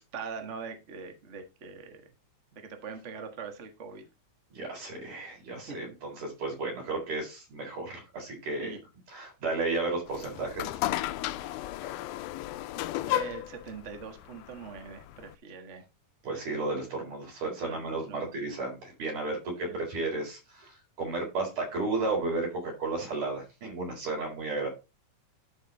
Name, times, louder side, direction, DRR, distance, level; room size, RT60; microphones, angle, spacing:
voice 1, 0.0-2.0 2.6-4.0 5.7-5.9 8.6-8.8 13.0-15.8 17.6-17.8 18.1-18.3 19.6-19.8, right 5 dB, 40° right, 5 dB, 0.9 m, -42 dB
voice 2, 4.5-8.7 9.1-10.7 16.2-24.7, right 3 dB, 75° right, 0 dB, 5.5 m, -33 dB
sound 1, 10.1-15.4, left 14 dB, 90° left, 2.1 m, -34 dB
12.5 x 4.9 x 3.9 m, 0.27 s
omnidirectional pair, 3.5 m